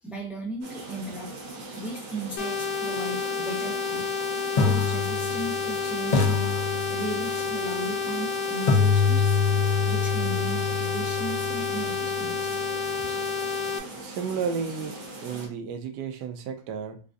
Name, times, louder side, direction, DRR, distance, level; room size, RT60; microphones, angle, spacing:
voice 1, 0.0-1.3 1.7-4.1 4.5-6.5 6.9-9.4 9.9-12.6, right 2 dB, ahead, -3 dB, 0.4 m, -36 dB
sound 1, 0.6-15.5, right 2 dB, 65° right, 1.5 m, -41 dB
sound 2, 2.4-13.8, left 6 dB, 70° left, 1.1 m, -30 dB
sound 3, 3.5-3.6 4.6-5.7 6.1-7.4 8.7-12.6, left 5 dB, 55° left, 0.4 m, -26 dB
voice 2, 14.0-17.0, right 6 dB, 85° right, 5 dB, 1.2 m, -32 dB
3.9 x 2.5 x 2.4 m, 0.37 s
omnidirectional pair, 1.8 m